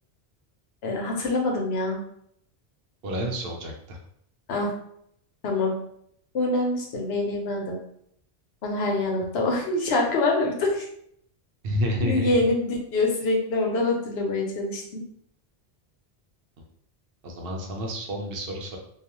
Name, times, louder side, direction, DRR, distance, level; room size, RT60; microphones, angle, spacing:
voice 1, 0.8-2.0 4.5-4.7 5.4-5.7 6.3-7.8 8.6-10.9 12.0-15.0, left 2 dB, 80° left, 0 dB, 0.9 m, -25 dB
voice 2, 3.0-4.0 11.6-12.3 17.2-18.8, equal, 65° right, 1 dB, 0.8 m, -29 dB
2.4 x 2.3 x 2.9 m, 0.69 s
omnidirectional pair, 1.1 m